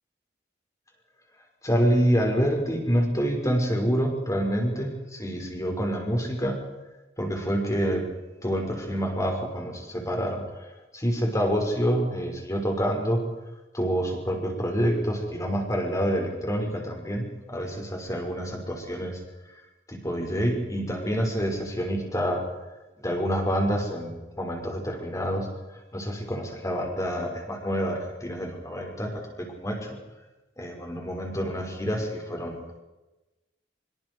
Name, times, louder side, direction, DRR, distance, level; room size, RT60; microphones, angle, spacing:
voice 1, 1.6-6.6 7.2-8.1 8.4-13.2 13.7-19.2 19.9-22.4 23.0-25.5 25.7-30.0 30.6-32.8, equal, 20° left, 2 dB, 5.7 m, -27 dB
26.0 x 24.5 x 4.9 m, 1.1 s
head